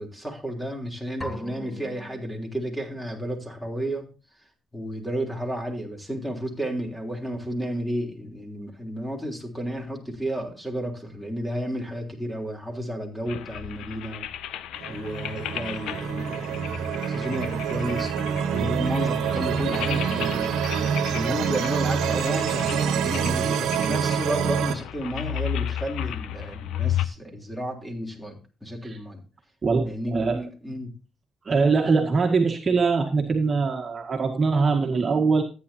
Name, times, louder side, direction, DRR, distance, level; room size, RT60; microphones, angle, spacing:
voice 1, 0.0-4.1 4.7-14.3 14.9-20.5 21.0-29.2 29.8-30.9, equal, 5° left, 2 dB, 3.4 m, -32 dB
sound 1, 1.2-3.0, left 2 dB, 20° left, 1.5 m, -40 dB
sound 2, 13.3-27.1, left 10 dB, 85° left, 0.7 m, -34 dB
sound 3, 14.8-24.7, right 7 dB, 85° right, 1.3 m, -26 dB
voice 2, 29.6-30.4 31.5-35.4, right 4 dB, 40° right, 2 dB, 1.8 m, -22 dB
14.5 x 9.6 x 2.8 m, 0.33 s
cardioid pair, 90°, 0 cm